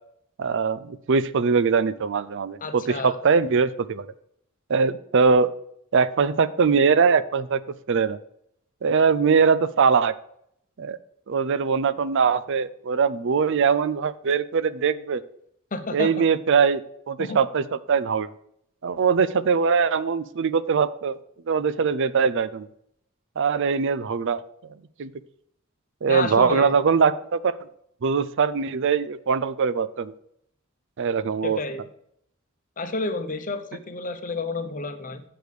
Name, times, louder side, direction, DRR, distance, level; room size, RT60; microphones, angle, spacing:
voice 1, 0.4-4.1 4.7-5.5 5.9-7.6 7.9-8.2 8.8-10.1 10.8-11.0 11.3-15.2 15.9-18.3 18.8-21.2 21.5-22.7 23.4-24.4 25.0-25.1 26.0-27.5 28.0-30.1 31.0-31.6, right 5 dB, 60° right, 16 dB, 0.5 m, -22 dB
voice 2, 2.6-3.2 15.7-16.2 17.2-17.4 26.1-26.7 31.4-31.8 32.8-35.2, left 3 dB, 40° left, 9 dB, 0.9 m, -30 dB
7.9 x 5.1 x 6.6 m, 0.72 s
head